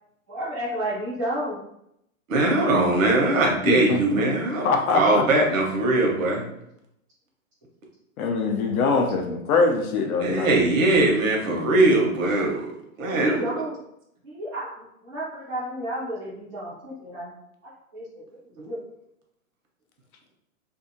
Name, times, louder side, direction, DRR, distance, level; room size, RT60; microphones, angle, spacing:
voice 1, 0.3-1.6 13.0-13.8 14.2-17.3 17.6-18.2 18.5-18.8, right 1 dB, 25° right, -11 dB, 0.4 m, -32 dB
voice 2, 2.3-4.7 4.9-6.4 10.2-12.7 13.0-13.5, right 2 dB, 70° right, 0 dB, 1.0 m, -21 dB
voice 3, 3.6-4.2 4.6-5.5 8.2-10.5, left 4 dB, 90° left, 3 dB, 0.7 m, -23 dB
2.7 x 2.4 x 2.6 m, 0.78 s
hypercardioid pair, 175°, 42 cm